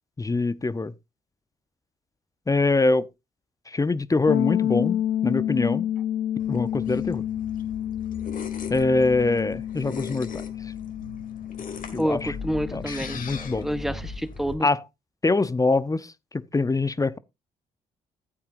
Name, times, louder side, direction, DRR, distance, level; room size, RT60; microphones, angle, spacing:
voice 1, 0.2-0.9 2.5-3.1 3.7-5.9 6.5-7.2 8.7-10.3 11.9-12.3 12.7-13.7 14.6-14.8 15.2-17.2, left 3 dB, 20° left, 0.7 m, -24 dB
sound 1, 4.3-14.0, left 11 dB, 70° left, 0.6 m, -30 dB
sound 2, 6.4-14.5, left 5 dB, 55° left, 2.1 m, -39 dB
voice 2, 12.0-14.7, equal, ahead, 1.2 m, -29 dB
13.5 x 8.6 x 2.6 m
hypercardioid pair, 50°, 17 cm